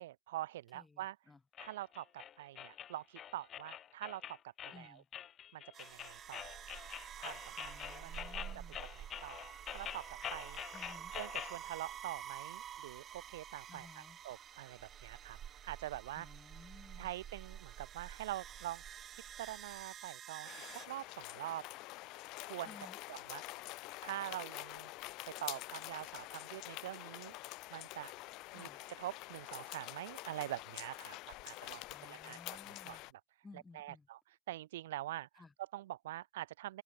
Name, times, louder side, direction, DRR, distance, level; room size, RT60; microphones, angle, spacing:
voice 1, 0.0-1.2 1.6-5.0 5.5-6.6 7.2-8.1 8.5-10.0 10.3-10.6 11.1-16.3 17.0-18.8 19.4-21.6 22.4-22.8 23.1-23.4 24.0-24.9 25.3-27.3 27.7-28.1 28.5-28.7 29.0-32.4 32.7-33.0 33.5-34.2 34.5-36.8, right 14 dB, 85° right, 0.5 m, -45 dB
voice 2, 0.7-1.4 4.7-5.1 7.6-8.8 10.7-11.1 13.7-14.2 16.2-17.1 22.6-23.0 28.5-28.8 31.9-33.0 33.4-34.1 35.4-35.5, left 3 dB, 20° left, 4.8 m, -57 dB
sound 1, 1.6-11.6, left 10 dB, 45° left, 2.0 m, -46 dB
sound 2, 5.7-20.9, right 9 dB, 45° right, 0.7 m, -49 dB
sound 3, 20.4-33.1, left 21 dB, 65° left, 3.8 m, -47 dB
hypercardioid pair, 80°, 0 cm